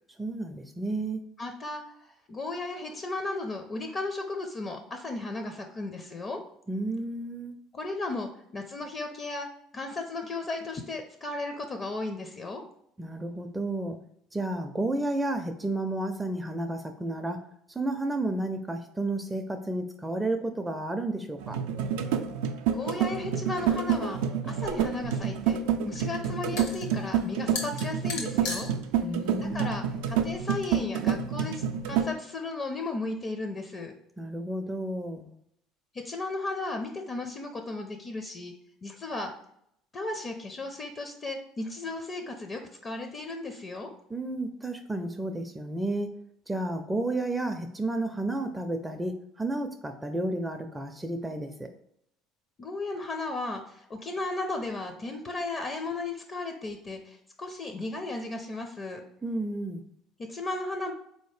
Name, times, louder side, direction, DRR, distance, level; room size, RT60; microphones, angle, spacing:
voice 1, 0.2-1.3 6.7-7.5 13.0-14.0 14.3-17.4 17.7-21.6 29.0-29.8 34.2-35.3 44.1-46.1 46.5-51.7 59.2-59.8, right 2 dB, 15° right, 6 dB, 0.4 m, -32 dB
voice 2, 1.4-6.4 7.7-9.5 9.7-12.6 22.7-28.7 29.5-33.9 35.9-38.5 38.8-39.3 39.9-43.9 52.6-59.0 60.2-60.9, left 2 dB, 40° left, 5 dB, 0.5 m, -35 dB
sound 1, 21.4-32.1, right 7 dB, 80° right, 0.3 m, -28 dB
sound 2, 24.6-30.8, left 2 dB, 85° left, 0.9 m, -40 dB
3.9 x 2.8 x 3.2 m, 0.73 s
supercardioid pair, 80°, 0 cm